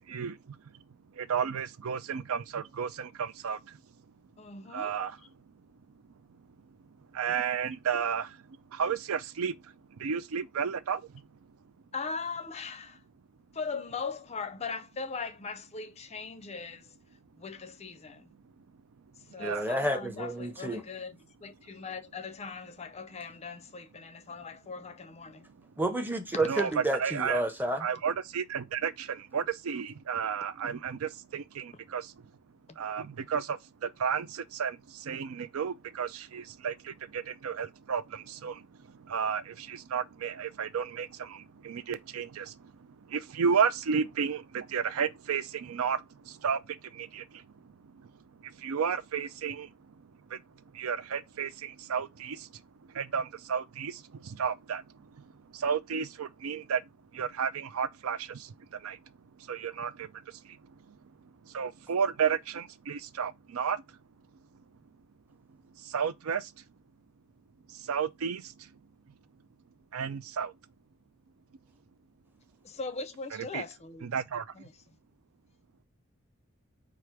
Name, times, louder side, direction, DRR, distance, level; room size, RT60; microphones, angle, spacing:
voice 1, 1.3-3.6 4.7-5.1 7.2-8.3 8.8-9.5 10.0-11.0 19.4-19.6 26.4-26.7 27.0-27.4 27.8-28.9 29.3-32.0 32.8-33.6 34.0-34.3 34.6-34.8 35.1-36.7 37.1-38.0 38.4-38.5 39.1-39.4 39.7-41.1 41.7-42.4 43.1-46.0 46.4-46.6 47.2-47.3 48.6-49.7 50.8-51.5 51.9-52.4 53.0-53.2 53.5-53.9 54.4-54.8 55.6-56.8 57.2-58.2 58.8-58.9 59.5-59.9 61.5-63.8 65.9-66.4 67.9-68.4 69.9-70.5 73.5-73.6 74.0-74.4, right 6 dB, 75° right, 0.4 m, -31 dB
voice 2, 4.4-5.0 11.9-13.0 13.5-16.9 17.4-18.3 19.3-25.5 32.7-32.8 72.6-74.1 74.5-74.7, left 4 dB, 30° left, 0.5 m, -40 dB
voice 3, 19.4-20.8 25.8-27.9, right 1 dB, 10° right, 0.7 m, -30 dB
4.8 x 2.5 x 4.5 m
head